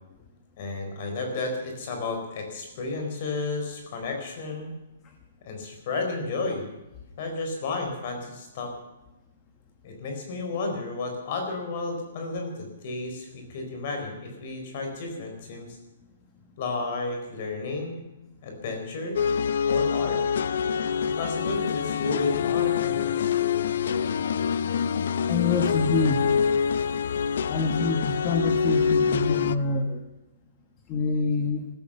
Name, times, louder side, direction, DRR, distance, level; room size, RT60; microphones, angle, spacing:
voice 1, 0.6-4.7 5.4-6.7 7.2-8.7 9.8-15.8 16.6-18.0 18.4-19.2 19.7-20.2 21.0-23.4, left 3 dB, 35° left, 4 dB, 4.3 m, -32 dB
sound 1, 19.2-29.6, left 7 dB, 55° left, 0.6 m, -25 dB
voice 2, 25.3-26.4 27.5-30.0 30.9-31.7, left 3 dB, 20° left, 5 dB, 1.1 m, -26 dB
15.5 x 14.0 x 6.7 m, 1.0 s
hypercardioid pair, 175°, 0 cm